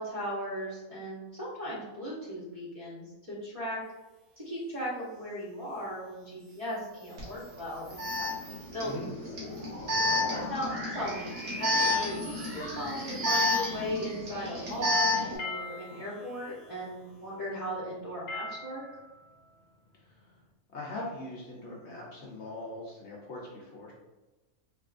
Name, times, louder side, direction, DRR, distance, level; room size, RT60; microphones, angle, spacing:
voice 1, 0.0-3.8 4.4-8.9 10.5-18.8, equal, 25° right, -8 dB, 1.0 m, -37 dB
sound 1, 6.2-17.1, equal, 50° right, 1.1 m, -44 dB
Alarm, 7.2-7.3 8.0-15.4, left 2 dB, 70° right, 1.5 m, -30 dB
sound 2, 14.9-20.5, left 3 dB, 80° left, 1.1 m, -43 dB
voice 2, 20.7-23.9, left 2 dB, 60° left, -4 dB, 0.9 m, -41 dB
4.1 x 3.0 x 2.5 m, 1.1 s
omnidirectional pair, 1.5 m